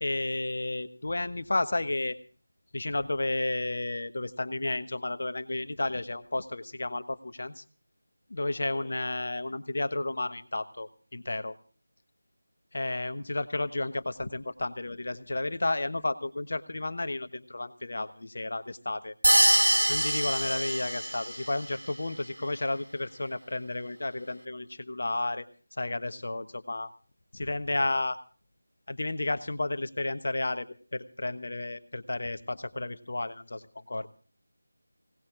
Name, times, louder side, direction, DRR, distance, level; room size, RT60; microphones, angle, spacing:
voice 1, 0.0-2.2 2.7-7.6 8.3-11.5 12.7-19.1 19.9-25.4 25.8-26.9 27.3-28.2 28.9-34.1, left 2 dB, 50° left, 11 dB, 1.2 m, -32 dB
sound 1, 19.2-21.5, right 1 dB, 80° right, 0.6 m, -24 dB
voice 2, 20.1-20.9, left 1 dB, 5° left, -13 dB, 3.5 m, -49 dB
25.0 x 18.5 x 2.5 m, 0.41 s
figure-of-eight pair, 165°, 0 cm